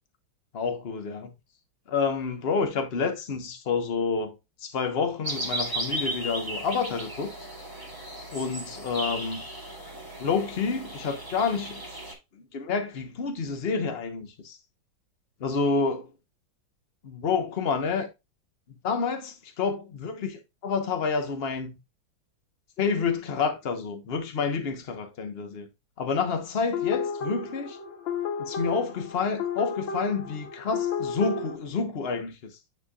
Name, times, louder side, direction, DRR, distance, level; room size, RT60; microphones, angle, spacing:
voice 1, 0.5-1.3 1.9-7.3 8.3-9.4 10.2-11.8 12.3-14.6 15.4-16.1 17.0-18.1 18.7-21.8 22.8-25.7 26.0-27.8 28.4-32.5, left 5 dB, 40° left, 1.0 m, -29 dB
sound 1, 5.2-12.1, right 1 dB, 10° right, 1.9 m, -35 dB
sound 2, 26.7-31.5, left 5 dB, 75° left, 1.6 m, -32 dB
9.4 x 4.5 x 2.3 m
omnidirectional pair, 2.1 m